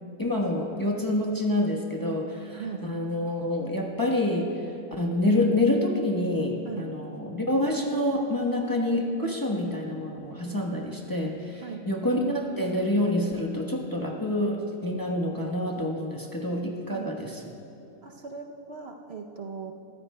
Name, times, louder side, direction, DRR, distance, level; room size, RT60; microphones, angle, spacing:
voice 1, 0.2-4.5 5.0-17.3, left 1 dB, 15° left, -1 dB, 1.0 m, -27 dB
voice 2, 2.5-2.8 6.6-6.9 11.6-11.8 16.9-17.1 18.0-19.7, right 5 dB, 55° right, 2 dB, 0.9 m, -38 dB
22.0 x 15.0 x 2.2 m, 2.8 s
omnidirectional pair, 1.4 m